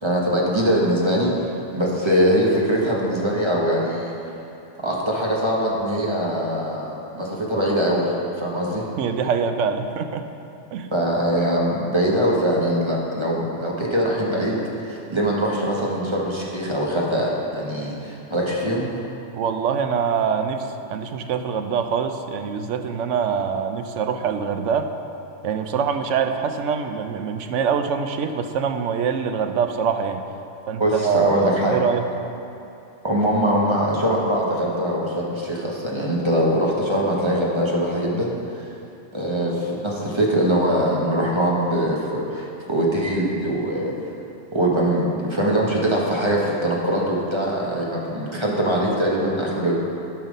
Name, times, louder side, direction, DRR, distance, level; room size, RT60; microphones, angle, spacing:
voice 1, 0.0-1.3 1.7-4.1 4.8-6.9 7.1-8.8 10.9-18.9 30.8-31.8 33.0-38.7 39.1-44.0 44.5-49.7, equal, 25° right, -3 dB, 1.3 m, -22 dB
voice 2, 9.0-10.3 10.7-10.9 19.3-24.9 25.4-30.2 30.7-32.0, right 6 dB, 80° right, 7 dB, 1.0 m, -24 dB
11.5 x 5.8 x 5.3 m, 2.7 s
omnidirectional pair, 1.3 m